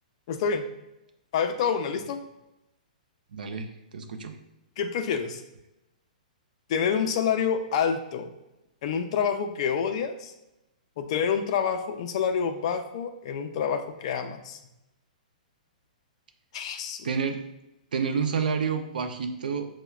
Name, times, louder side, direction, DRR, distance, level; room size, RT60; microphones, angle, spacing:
voice 1, 0.3-0.7 1.3-2.2 4.8-5.4 6.7-8.3 8.8-10.3 11.0-14.6 16.5-17.1, left 7 dB, 45° left, 7 dB, 0.4 m, -27 dB
voice 2, 3.3-4.3 17.0-17.4 17.9-19.7, right 6 dB, 85° right, 7 dB, 0.5 m, -29 dB
5.6 x 2.1 x 2.3 m, 0.92 s
hypercardioid pair, 155°, 5 cm